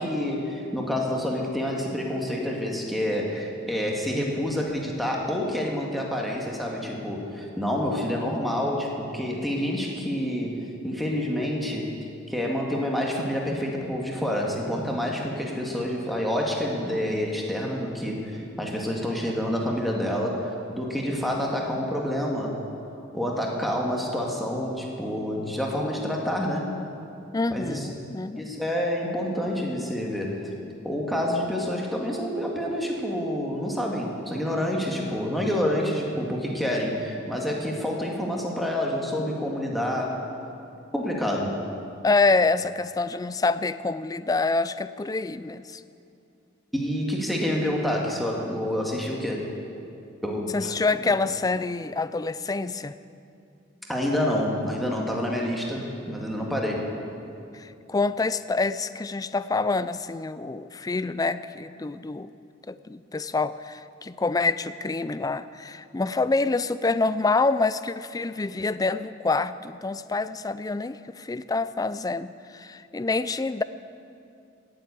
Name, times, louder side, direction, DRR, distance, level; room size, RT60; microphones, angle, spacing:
voice 1, 0.0-11.9 12.3-22.6 23.1-26.7 27.5-27.9 28.4-30.5 30.8-40.2 40.9-41.6 46.7-49.5 50.2-50.7 53.9-56.9, equal, ahead, -2 dB, 2.0 m, -28 dB
voice 2, 27.3-28.5 42.0-45.8 50.5-52.9 57.5-62.3 62.7-73.6, left 3 dB, 20° left, 14 dB, 0.3 m, -26 dB
18.0 x 7.8 x 8.4 m, 2.6 s
head